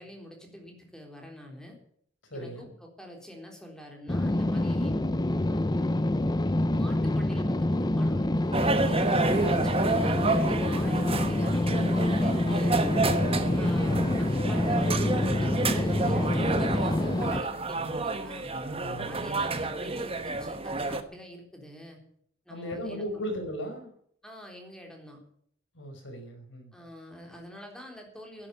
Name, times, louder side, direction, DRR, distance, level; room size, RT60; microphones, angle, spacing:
voice 1, 0.0-1.8 2.3-4.9 5.4-6.0 6.7-8.8 9.3-12.9 13.5-18.5 19.1-22.0 22.5-23.3 24.2-25.2 26.7-28.5, equal, 5° left, 1 dB, 3.8 m, -46 dB
voice 2, 2.2-2.7 9.2-9.7 13.4-13.9 18.8-19.3 22.5-23.9 25.7-26.7, equal, 80° left, 4 dB, 5.1 m, -37 dB
sound 1, 4.1-17.4, left 1 dB, 20° left, 0.6 m, -26 dB
sound 2, 8.5-21.0, right 3 dB, 30° right, 1.2 m, -30 dB
11.5 x 10.5 x 8.7 m, 0.64 s
head